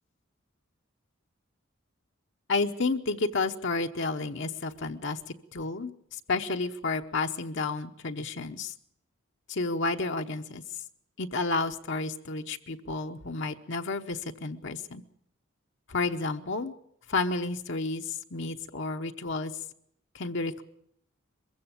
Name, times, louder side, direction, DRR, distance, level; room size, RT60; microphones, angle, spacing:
voice 1, 2.5-5.2 5.5-8.7 9.5-10.6 11.2-15.0 15.9-16.7 17.1-19.5 20.1-20.6, left 3 dB, 65° left, 5 dB, 1.0 m, -31 dB
22.5 x 15.5 x 8.6 m, 0.71 s
head